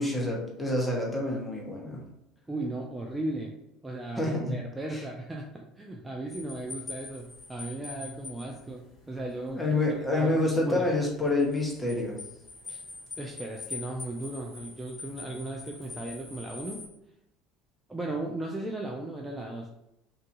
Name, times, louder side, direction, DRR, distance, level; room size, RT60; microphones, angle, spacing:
voice 1, 0.0-2.0 4.2-4.6 4.9-5.0 9.5-12.2, left 2 dB, 10° left, -1 dB, 0.8 m, -27 dB
voice 2, 2.5-3.5 3.8-10.9 12.7-12.8 13.2-16.8 17.9-19.7, right 2 dB, 15° right, 0 dB, 0.4 m, -36 dB
sound 1, 6.3-16.9, left 4 dB, 30° left, 1.2 m, -44 dB
2.6 x 2.4 x 2.5 m, 0.86 s
figure-of-eight pair, 65°, 0 cm